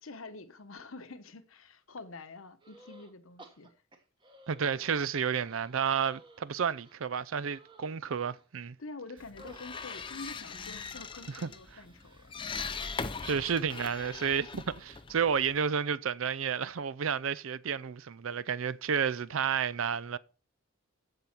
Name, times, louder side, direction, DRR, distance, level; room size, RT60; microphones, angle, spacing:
voice 1, 0.0-3.7 8.8-12.3 13.7-13.8, left 3 dB, 80° left, 1.0 m, -47 dB
sound 1, 2.6-3.1 3.4-5.1 5.4-8.5 9.4-13.1, right 1 dB, 20° right, 1.3 m, -57 dB
voice 2, 4.5-8.8 11.4-11.5 13.2-20.2, right 7 dB, 75° right, 0.5 m, -31 dB
sound 2, 9.2-15.7, left 5 dB, 25° left, 0.6 m, -41 dB
14.5 x 5.5 x 4.5 m
head